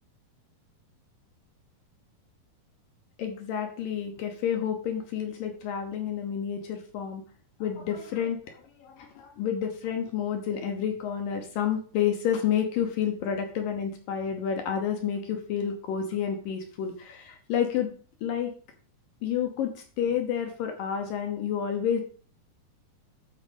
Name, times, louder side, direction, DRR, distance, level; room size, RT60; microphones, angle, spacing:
voice 1, 3.2-7.2 7.6-17.9 18.2-18.5 19.2-19.7 20.0-22.0, left 8 dB, 70° left, 4 dB, 2.6 m, -29 dB
12.0 x 4.9 x 5.3 m, 0.41 s
omnidirectional pair, 4.4 m